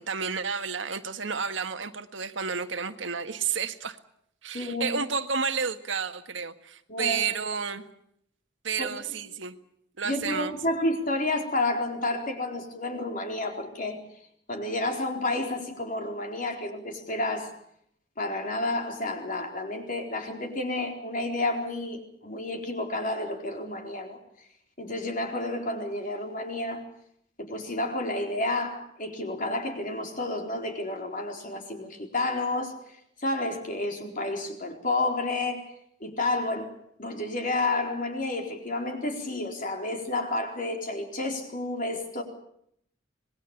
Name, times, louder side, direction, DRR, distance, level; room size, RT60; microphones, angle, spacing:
voice 1, 0.0-4.0 4.4-7.8 8.6-9.6 10.0-10.5, right 5 dB, 85° right, 1.6 m, -31 dB
voice 2, 4.5-5.0 6.9-7.2 8.8-8.9 10.0-14.0 14.5-17.5 18.2-24.2 24.8-26.8 27.4-32.7 33.2-35.6 36.0-36.7 37.0-42.2, left 2 dB, 45° left, 4.2 m, -30 dB
26.5 x 20.5 x 7.1 m
head